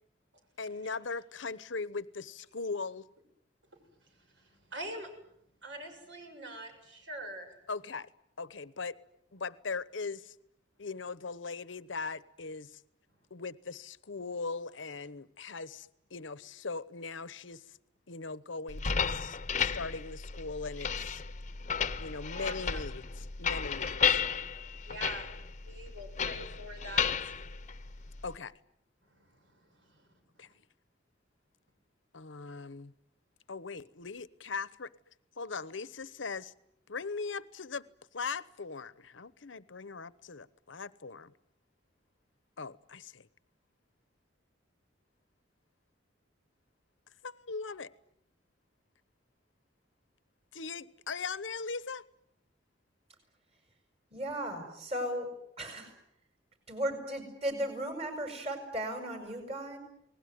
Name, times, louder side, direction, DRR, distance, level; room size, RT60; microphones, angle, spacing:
voice 1, 0.6-3.1 7.7-8.1 8.4-9.0 9.3-10.4 10.8-12.8 13.3-17.8 18.1-21.2 22.0-24.2 28.2-28.5 30.4-30.5 32.1-32.9 33.5-34.9 35.4-36.5 36.9-37.9 38.1-41.3 42.6-43.3 47.2-47.9 50.5-52.0, left 4 dB, 80° left, 1.0 m, -40 dB
voice 2, 4.7-5.1 5.6-7.5 22.0-22.1 22.3-22.8 24.8-25.3 25.7-27.3 29.2-29.3, right 1 dB, 70° right, 7.5 m, -43 dB
sound 1, 18.7-28.4, left 6 dB, 40° left, 1.0 m, -33 dB
voice 3, 54.1-56.0 56.7-59.8, right 1 dB, 35° right, 6.9 m, -36 dB
29.0 x 20.5 x 9.5 m
head